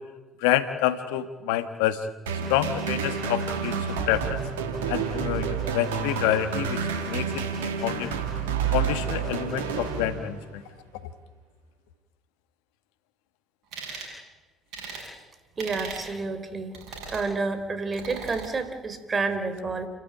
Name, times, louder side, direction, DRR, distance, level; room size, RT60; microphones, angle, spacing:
voice 1, 0.4-2.0 2.5-3.7 4.1-4.4 4.9-7.4 7.8-8.1 8.7-10.6, left 12 dB, 75° left, 12 dB, 1.4 m, -27 dB
sound 1, 2.3-10.6, right 6 dB, 85° right, 2.6 m, -29 dB
sound 2, 13.7-14.1 14.7-15.1 15.6-16.1 16.7-17.3 17.9-18.5, right 5 dB, 65° right, 7.9 m, -38 dB
voice 2, 15.6-16.7 17.1-19.9, right 3 dB, 35° right, 10 dB, 3.9 m, -29 dB
30.0 x 13.5 x 9.9 m, 1.2 s
hypercardioid pair, 55°, 0 cm